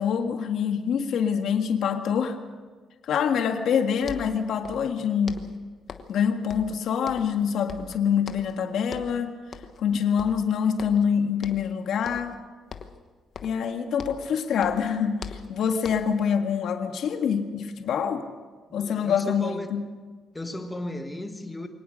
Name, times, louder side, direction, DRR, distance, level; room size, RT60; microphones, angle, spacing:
voice 1, 0.0-2.4 3.0-5.5 6.1-9.4 9.8-12.4 13.4-18.3 18.7-19.8, left 7 dB, 60° left, 1.7 m, -25 dB
sound 1, 3.7-3.8 4.0-5.0 5.3-6.2 6.5-7.4 7.7-8.6 8.9-9.2 9.5-9.9 10.2-11.1 11.4-11.7 12.0-12.4 12.7-14.3 14.6-16.2, left 6 dB, 40° left, 1.1 m, -42 dB
voice 2, 18.7-19.7 20.3-21.7, left 1 dB, 10° left, 1.5 m, -35 dB
23.5 x 18.5 x 6.4 m
cardioid pair, 175°, 0 cm